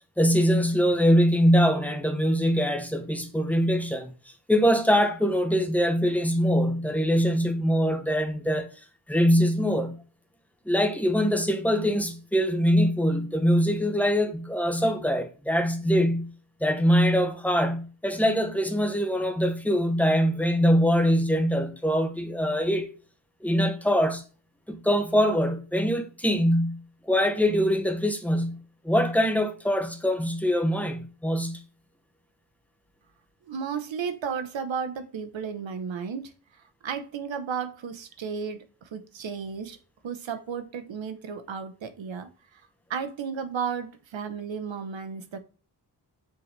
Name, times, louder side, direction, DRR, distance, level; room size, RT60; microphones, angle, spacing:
voice 1, 0.2-4.1 4.5-8.7 9.1-10.0 10.7-16.3 16.6-22.9 23.4-24.2 24.7-26.8 27.1-28.6 28.8-31.6, equal, 5° left, 1.0 m, -23 dB
voice 2, 33.5-36.3 36.8-39.8 40.0-42.6 42.9-45.4, right 6 dB, 80° right, 1.1 m, -33 dB
7.0 x 6.0 x 3.4 m
wide cardioid pair, 165°, 45 cm